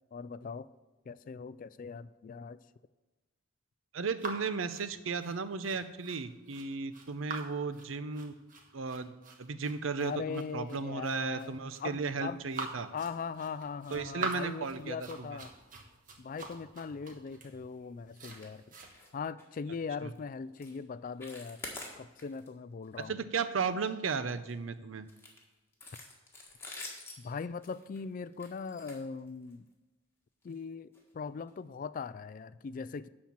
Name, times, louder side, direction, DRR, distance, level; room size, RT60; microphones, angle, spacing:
voice 1, 0.1-0.7 1.1-2.6 10.0-12.4 12.9-15.5 16.2-18.8 19.1-21.6 22.0-23.2 27.2-29.7 30.4-33.1, left 5 dB, 45° left, 16 dB, 0.3 m, -40 dB
voice 2, 3.9-8.3 8.7-9.1 9.4-12.9 13.9-15.4 20.0-20.1 23.1-25.1, right 5 dB, 80° right, 12 dB, 0.6 m, -35 dB
sound 1, 4.2-18.9, right 3 dB, 45° right, 1.3 m, -45 dB
sound 2, 18.3-18.5 18.8-19.1 19.4-19.6 20.0-20.2 20.6-20.8 21.1-22.5 22.8-23.0 23.4-24.5 25.1-29.7 30.4-30.6 30.9-31.0 31.5-31.6, left 2 dB, 10° left, 1.7 m, -48 dB
11.5 x 4.4 x 7.3 m, 1.1 s
head